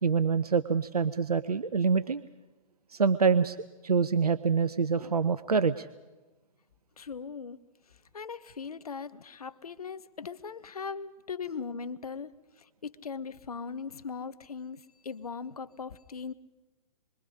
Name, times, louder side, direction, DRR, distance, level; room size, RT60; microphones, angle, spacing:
voice 1, 0.0-2.2 2.9-3.6 3.8-5.9, right 5 dB, 85° right, 13 dB, 0.8 m, -26 dB
voice 2, 7.0-16.3, left 5 dB, 75° left, 13 dB, 1.2 m, -40 dB
27.0 x 23.0 x 5.1 m, 1.1 s
figure-of-eight pair, 120°, 19 cm